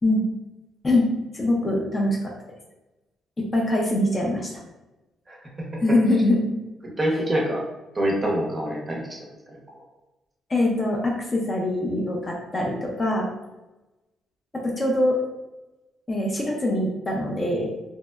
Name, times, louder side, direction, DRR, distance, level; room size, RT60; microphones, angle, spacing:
voice 1, 1.3-2.3 3.4-4.6 5.8-6.6 10.5-13.3 14.6-15.2 16.1-17.7, left 1 dB, 30° left, -1 dB, 0.5 m, -23 dB
voice 2, 7.0-7.6 7.9-9.8, right 1 dB, 20° right, -2 dB, 0.7 m, -26 dB
2.7 x 2.1 x 2.2 m, 1.0 s
cardioid pair, 90°, 0 cm